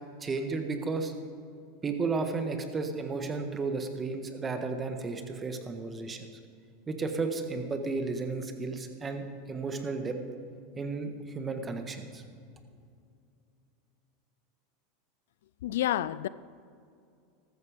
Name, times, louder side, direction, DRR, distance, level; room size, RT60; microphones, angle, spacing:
voice 1, 0.2-1.1 1.8-6.3 6.9-10.1 10.8-12.2, right 4 dB, 20° right, 1.6 m, -33 dB
voice 2, 15.6-16.3, left 13 dB, 80° left, 0.4 m, -29 dB
14.0 x 13.5 x 5.2 m
hypercardioid pair, 110°, 0 cm